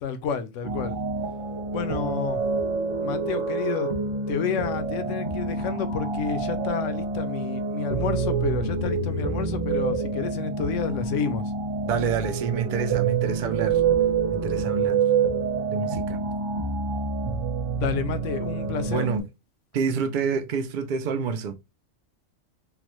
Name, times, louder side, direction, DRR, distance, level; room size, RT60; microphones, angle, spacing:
voice 1, 0.0-1.0 1.7-2.4 3.0-3.9 4.3-11.4 17.7-19.1, left 7 dB, 75° left, 0.9 m, -30 dB
sound 1, 0.6-19.2, right 5 dB, 45° right, 1.1 m, -27 dB
voice 2, 11.9-13.8 14.3-15.0 15.7-16.2 18.9-19.2 19.7-21.5, right 6 dB, 70° right, 0.4 m, -28 dB
3.8 x 2.1 x 3.0 m
omnidirectional pair, 1.4 m